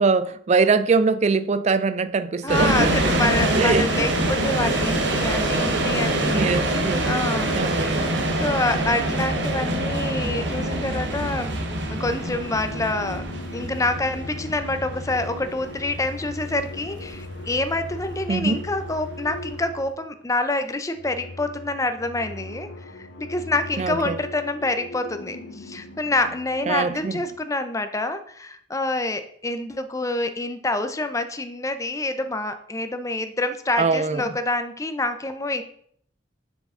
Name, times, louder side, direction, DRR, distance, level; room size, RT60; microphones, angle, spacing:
voice 1, 0.0-2.9 3.6-3.9 6.3-7.1 7.5-8.2 18.3-18.6 23.8-24.2 26.7-27.1 33.8-34.2, right 4 dB, 40° right, 0.4 m, -22 dB
voice 2, 2.4-7.9 8.3-11.6 11.9-13.2 13.5-22.7 22.9-35.6, left 2 dB, 15° left, 0.6 m, -27 dB
sound 1, 2.5-19.5, right 1 dB, 75° right, 1.2 m, -25 dB
sound 2, 10.2-20.2 20.8-27.4, left 2 dB, 70° left, 0.8 m, -38 dB
7.4 x 6.3 x 3.8 m
head